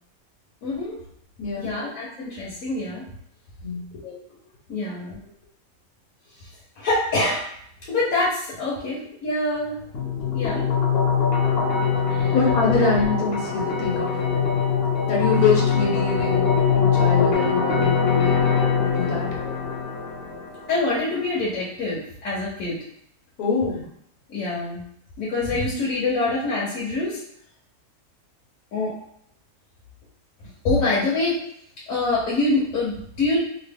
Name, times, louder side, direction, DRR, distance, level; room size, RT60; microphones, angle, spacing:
voice 1, 0.6-1.0 1.6-3.0 4.0-4.2 4.7-5.2 6.4-6.5 6.8-7.5 7.9-9.8 10.3-10.7 12.1-12.3 18.6-18.7 19.4-19.5 20.7-22.8 24.3-24.8 25.2-27.2 28.7-29.0 30.6-31.5 31.9-33.4, left 2 dB, 70° left, -5 dB, 1.2 m, -25 dB
voice 2, 1.4-1.7 3.6-3.9 10.2-10.3 12.3-14.2 15.1-16.4 16.7-18.3 18.7-19.3 23.4-23.9, left 4 dB, 90° left, -2 dB, 1.4 m, -24 dB
sound 1, 9.9-21.0, left 6 dB, 50° left, 0.8 m, -22 dB
2.9 x 2.4 x 3.4 m, 0.69 s
omnidirectional pair, 1.5 m